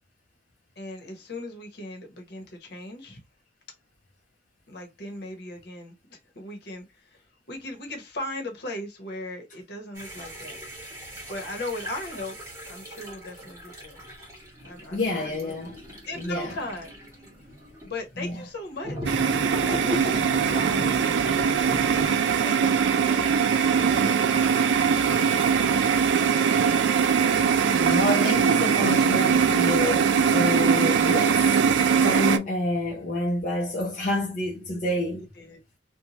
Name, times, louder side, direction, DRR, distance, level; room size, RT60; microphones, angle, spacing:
voice 1, 0.8-3.2 4.7-10.6 11.3-12.4 12.7-14.0 14.6-15.6 16.1-16.9 17.8-21.8 22.3-23.4 23.9-24.8 25.1-26.8 35.3-35.6, left 1 dB, 65° left, 1.0 m, -38 dB
sound 1, 10.0-17.9 18.8-22.1, equal, 15° right, 1.1 m, -37 dB
voice 2, 14.9-15.8 16.2-16.5 18.2-18.4 22.6-22.7 27.7-35.3, left 1 dB, 45° left, 0.6 m, -28 dB
sound 2, 19.1-32.4, right 6 dB, 85° right, 0.4 m, -21 dB
2.7 x 2.2 x 2.8 m
head